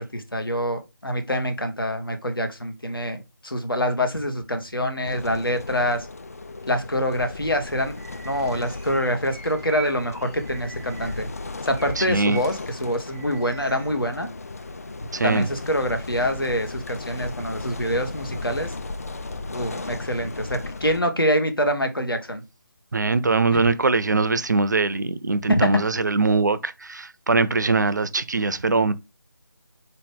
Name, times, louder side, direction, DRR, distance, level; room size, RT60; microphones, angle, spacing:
voice 1, 0.0-3.2 3.4-6.1 6.7-7.9 8.2-11.3 11.6-14.3 15.2-18.7 19.5-22.4 23.5-23.6 25.5-25.7, equal, 85° left, 1.1 m, -25 dB
sound 1, 5.0-21.0, left 3 dB, 45° left, 0.3 m, -36 dB
Bird vocalization bird call bird song, 7.9-11.3 11.7-13.9, right 5 dB, 5° right, 0.6 m, -43 dB
voice 2, 12.0-12.4 15.1-15.5 22.9-28.9, right 3 dB, 55° right, 0.4 m, -22 dB
4.2 x 3.0 x 3.4 m
figure-of-eight pair, 160°, 12 cm